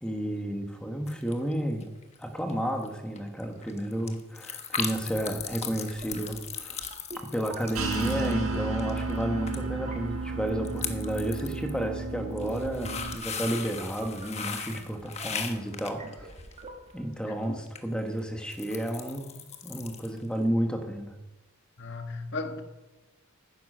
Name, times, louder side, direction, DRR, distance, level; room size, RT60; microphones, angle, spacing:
voice 1, 0.0-1.9 2.2-6.9 7.2-16.3 16.9-21.1, right 1 dB, 5° left, 1.4 m, -32 dB
sound 1, 1.1-1.5 1.8-2.2 2.5-2.6 2.8-2.9 3.2-9.2 9.5-9.6 9.9-10.0 10.5-11.7 12.2-16.6 17.7-17.8 18.2-20.2 20.5-20.6, left 6 dB, 30° left, 1.2 m, -38 dB
sound 2, 5.3-17.2, right 1 dB, 30° right, 1.5 m, -48 dB
sound 3, 7.7-13.1, right 3 dB, 80° right, 1.7 m, -33 dB
voice 2, 17.3-17.6 21.8-22.6, left 3 dB, 55° left, 1.6 m, -36 dB
14.0 x 10.0 x 6.3 m
head